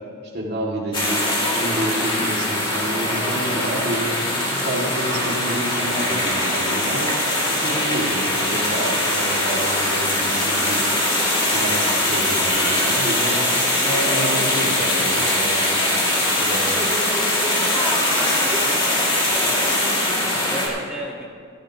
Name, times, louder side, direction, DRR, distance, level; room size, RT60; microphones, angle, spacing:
voice 1, 0.2-4.2 4.5-7.2 7.4-10.8 11.5-13.4 13.7-15.9 16.2-16.8, right 1 dB, 50° right, -3 dB, 2.2 m, -29 dB
sound 1, 0.9-20.7, left 1 dB, 25° left, 2.3 m, -21 dB
voice 2, 17.8-19.6 20.1-21.2, equal, 5° right, -5 dB, 1.3 m, -36 dB
15.5 x 14.0 x 2.9 m, 2.2 s
head